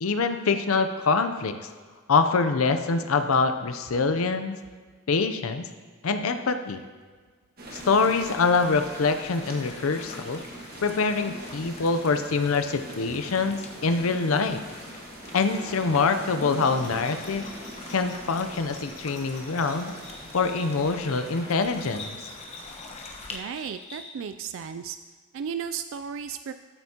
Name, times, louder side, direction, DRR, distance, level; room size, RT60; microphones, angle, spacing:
voice 1, 0.0-1.6 2.1-4.6 5.1-5.7 6.0-6.8 7.7-10.4 10.8-14.6 15.3-17.4 17.9-19.9 20.3-22.2, left 4 dB, 80° left, 8 dB, 0.6 m, -25 dB
sound 1, 7.6-21.6, right 1 dB, 45° right, 1.4 m, -43 dB
sound 2, 7.7-23.4, left 3 dB, 30° left, 0.9 m, -45 dB
Bell, 16.5-24.4, left 3 dB, 60° left, 2.8 m, -47 dB
voice 2, 23.3-25.0 25.3-26.5, right 7 dB, 65° right, 9 dB, 0.3 m, -34 dB
13.5 x 7.9 x 2.9 m, 1.5 s
head